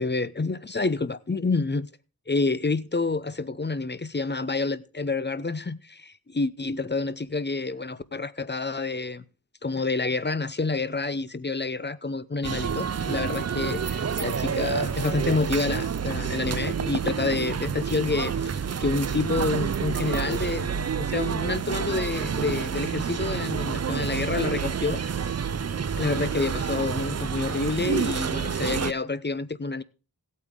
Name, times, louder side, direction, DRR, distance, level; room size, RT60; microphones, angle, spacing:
voice 1, 0.0-1.9 2.3-9.2 9.6-25.3 26.0-29.8, left 3 dB, 25° left, 0.5 m, -28 dB
sound 1, 12.4-28.9, right 7 dB, 40° right, 0.4 m, -28 dB
16.0 x 8.5 x 3.6 m
wide cardioid pair, 50°, 40 cm